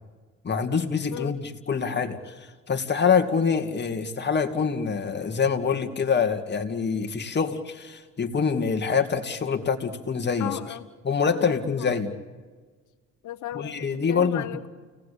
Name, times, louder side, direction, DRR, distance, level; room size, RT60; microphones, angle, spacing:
voice 1, 0.4-10.6 11.0-12.1 13.5-14.5, left 6 dB, 35° left, 6 dB, 2.5 m, -25 dB
voice 2, 10.4-10.9 11.3-12.0 13.2-13.8 14.1-14.7, left 13 dB, 80° left, 8 dB, 1.2 m, -35 dB
30.0 x 18.5 x 8.6 m, 1.5 s
cardioid pair, 90°, 30 cm